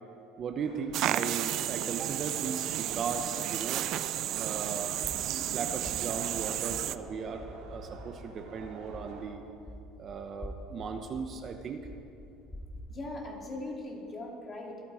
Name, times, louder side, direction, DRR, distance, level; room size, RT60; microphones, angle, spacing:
voice 1, 0.4-3.8 4.4-5.0 5.2-9.4 10.0-11.9, right 5 dB, 40° right, 6 dB, 0.9 m, -37 dB
sound 1, 0.6-9.2, right 4 dB, 75° right, 2.4 m, -49 dB
sound 2, 0.9-7.0, right 13 dB, 55° right, 0.4 m, -32 dB
sound 3, 5.0-12.8, equal, 10° left, 1.8 m, -47 dB
voice 2, 12.9-14.8, left 2 dB, 30° left, -1 dB, 2.8 m, -40 dB
25.5 x 8.6 x 5.0 m, 2.6 s
cardioid pair, 125°, 0 cm